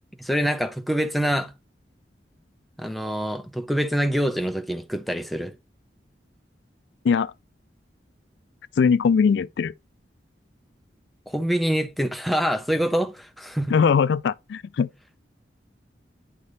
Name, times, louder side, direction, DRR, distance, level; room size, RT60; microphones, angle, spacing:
voice 1, 0.2-1.5 2.8-5.5 11.3-13.8, equal, ahead, 0.5 m, -25 dB
voice 2, 8.8-9.7 13.7-14.9, left 6 dB, 70° left, 0.3 m, -20 dB
9.6 x 3.3 x 4.1 m
head